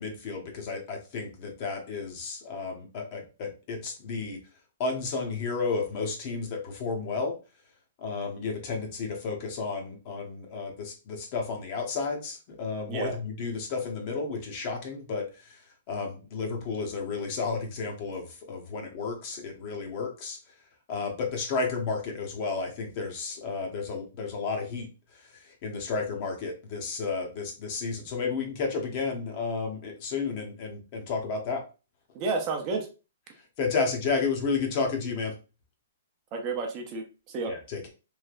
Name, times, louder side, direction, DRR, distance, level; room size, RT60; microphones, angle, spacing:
voice 1, 0.0-4.4 4.8-7.3 8.0-15.6 15.9-20.4 20.9-24.9 25.6-31.6 33.6-35.3 37.5-37.9, left 4 dB, 35° left, 2 dB, 0.9 m, -32 dB
voice 2, 32.1-32.9 36.3-37.5, right 3 dB, 30° right, 3 dB, 0.6 m, -31 dB
3.2 x 2.7 x 2.4 m, 0.31 s
hypercardioid pair, 155°, 0 cm